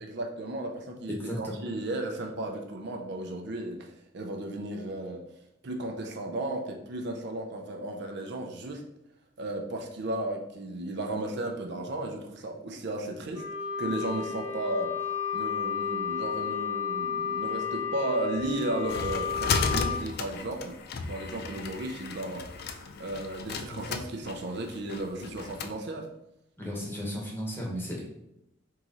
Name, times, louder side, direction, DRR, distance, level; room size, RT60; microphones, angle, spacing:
voice 1, 0.0-5.2 5.6-8.8 9.4-13.4 13.8-14.9 15.3-20.8 21.0-22.4 23.0-26.1, right 1 dB, 60° right, 2 dB, 0.5 m, -34 dB
voice 2, 1.1-1.6 26.6-28.0, equal, 10° left, -2 dB, 1.0 m, -34 dB
Wind instrument woodwind instrument, 13.3-20.0, left 7 dB, 90° left, 0.7 m, -32 dB
sound 1, 18.4-25.8, left 4 dB, 55° left, 0.4 m, -34 dB
3.7 x 3.0 x 3.9 m, 0.83 s
head